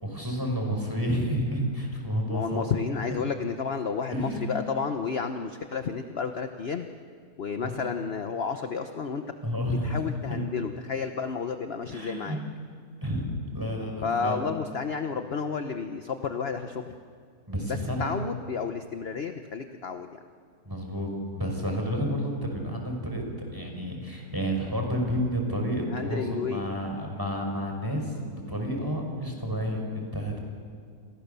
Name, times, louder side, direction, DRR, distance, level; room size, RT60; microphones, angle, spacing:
voice 1, 0.0-2.7 4.1-4.5 7.6-7.8 9.4-10.4 11.9-12.4 13.0-13.3 13.5-14.4 17.5-18.2 20.7-23.2 23.5-30.4, equal, 15° right, 1 dB, 5.4 m, -30 dB
voice 2, 2.3-6.9 7.4-9.2 9.8-12.4 14.0-16.9 17.7-20.2 25.9-26.8, left 5 dB, 45° left, 7 dB, 1.1 m, -31 dB
28.5 x 28.0 x 6.9 m, 2.2 s
omnidirectional pair, 1.7 m